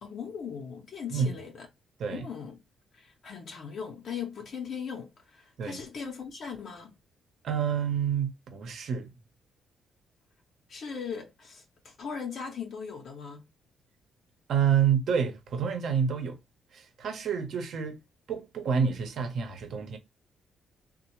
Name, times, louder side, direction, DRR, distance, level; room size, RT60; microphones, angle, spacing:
voice 1, 0.0-1.7 2.1-2.6 2.9-6.9 10.7-13.4, left 6 dB, 60° left, 0.7 m, -39 dB
voice 2, 7.4-9.1 14.5-16.4 16.7-18.0 18.3-20.0, right 7 dB, 65° right, 0.8 m, -28 dB
3.2 x 2.2 x 3.0 m
cardioid pair, 90°, 0 cm